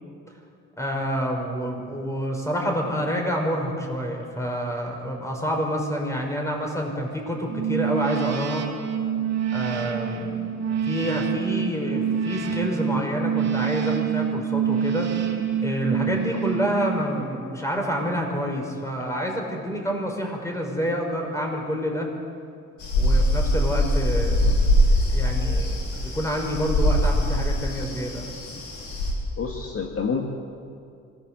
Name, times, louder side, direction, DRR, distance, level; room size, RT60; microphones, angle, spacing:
voice 1, 0.8-8.7 9.5-15.1 15.6-22.1 23.0-28.3, equal, 10° left, 1 dB, 6.1 m, -28 dB
sound 1, 7.5-17.4, right 8 dB, 60° right, 3.1 m, -27 dB
sound 2, 22.8-29.1, equal, 70° left, 5.5 m, -22 dB
voice 2, 29.4-30.2, left 5 dB, 50° left, 1 dB, 2.2 m, -27 dB
25.5 x 17.0 x 7.9 m, 2.3 s
cardioid pair, 90°, 30 cm